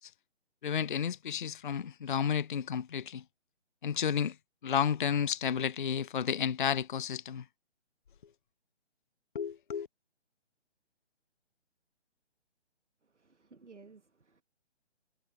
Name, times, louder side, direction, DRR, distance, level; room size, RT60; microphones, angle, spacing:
voice 1, 0.6-3.2 3.8-4.3 4.6-7.4 9.3-9.9, left 8 dB, 45° left, 0.6 m, -31 dB
voice 2, 13.1-14.4, right 4 dB, 80° right, 1.5 m, -56 dB
figure-of-eight pair, 140°, 35 cm